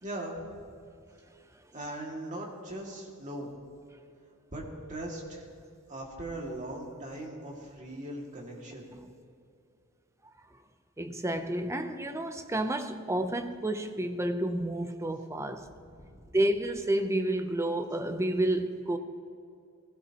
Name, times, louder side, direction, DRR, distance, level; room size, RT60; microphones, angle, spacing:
voice 1, 0.0-0.6 1.7-3.5 4.5-4.6 4.9-5.5 5.9-8.9 15.8-16.2, right 1 dB, 35° right, 2.3 m, -39 dB
voice 2, 11.0-15.7 16.3-19.0, right 1 dB, 15° right, 0.7 m, -30 dB
21.0 x 16.0 x 3.0 m
head